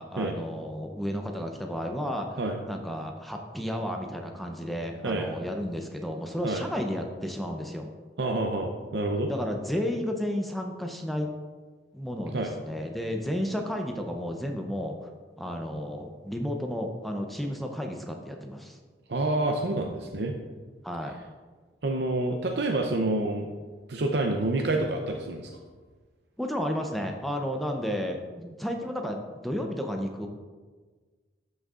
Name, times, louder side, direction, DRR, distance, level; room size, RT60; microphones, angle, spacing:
voice 1, 0.0-2.4 2.7-7.9 9.3-11.3 11.9-15.1 15.4-18.8 20.8-21.1 26.4-30.3, equal, ahead, 2 dB, 0.6 m, -32 dB
voice 2, 8.2-9.3 12.3-12.5 19.1-20.3 21.8-23.5 23.9-25.5, right 2 dB, 65° right, 2 dB, 0.6 m, -28 dB
12.0 x 6.3 x 2.4 m, 1.4 s
head